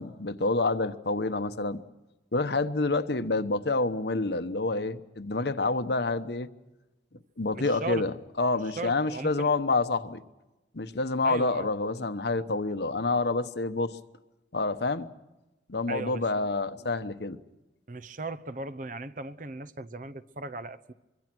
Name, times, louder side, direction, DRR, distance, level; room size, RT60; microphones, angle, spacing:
voice 1, 0.0-1.8 2.3-6.5 7.4-10.2 10.7-14.0 14.5-15.1 15.7-17.4, left 3 dB, 65° left, 1.1 m, -28 dB
voice 2, 7.5-8.1 8.8-9.5 11.2-11.7 15.9-16.3 16.8-16.9 17.9-20.9, right 2 dB, 45° right, 0.9 m, -37 dB
24.5 x 24.0 x 6.1 m
head